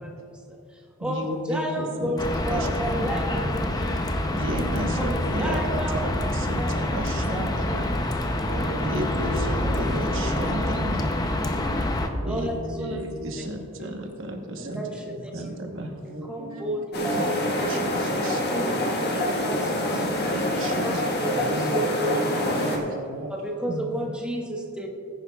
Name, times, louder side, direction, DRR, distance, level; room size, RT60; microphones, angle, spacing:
voice 1, 0.0-4.2 5.0-6.2 6.5-6.7 7.3-7.8 9.3-9.4 9.8-10.0 10.4-10.8 11.5-11.9 12.2-13.0 13.8-13.9 14.7-15.5 16.2-17.7 18.2-20.0 20.8-22.9 23.3-24.9, right 1 dB, 5° right, -1 dB, 1.2 m, -32 dB
voice 2, 1.0-2.2 2.5-2.7 2.9-3.5 4.3-5.6 5.9-7.9 8.8-11.1 12.2-14.8 15.3-15.9 17.1-18.4 19.9-21.0 23.7-23.9, right 1 dB, 60° right, 2 dB, 1.1 m, -33 dB
sound 1, 2.2-12.1, left 1 dB, 20° left, 0.6 m, -27 dB
voice 3, 8.5-9.0 10.4-10.6 11.6-12.3 13.4-13.5 14.6-14.8 15.3-15.6 16.1-16.8 21.3-21.8 22.1-23.3, right 1 dB, 80° right, 0 dB, 1.6 m, -37 dB
sound 2, 16.9-22.8, left 1 dB, 50° left, 1.5 m, -26 dB
19.5 x 10.0 x 2.3 m, 2.4 s
head